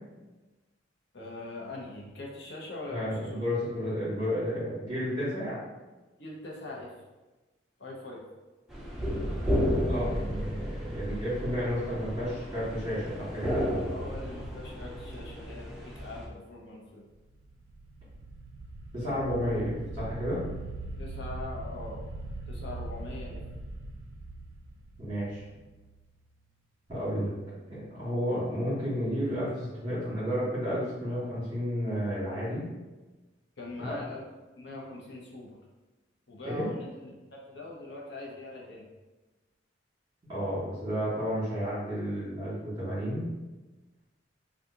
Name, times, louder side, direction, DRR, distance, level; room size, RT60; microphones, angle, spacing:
voice 1, 1.1-3.4 6.2-6.9 7.8-8.2 13.9-17.0 21.0-22.1 22.5-23.5 33.6-34.2 34.6-35.5 36.3-38.9, left 2 dB, 65° left, -3 dB, 0.8 m, -42 dB
voice 2, 2.9-5.6 9.9-13.7 18.9-20.5 25.0-25.4 26.9-27.3 27.7-32.7 33.8-33.9 36.5-36.7 40.3-43.3, equal, 25° right, -12 dB, 1.4 m, -32 dB
sound 1, 8.7-16.3, equal, ahead, 0.5 m, -33 dB
sound 2, 13.6-15.9 17.3-26.2, right 2 dB, 85° right, 0.4 m, -42 dB
2.8 x 2.4 x 3.6 m, 1.2 s
head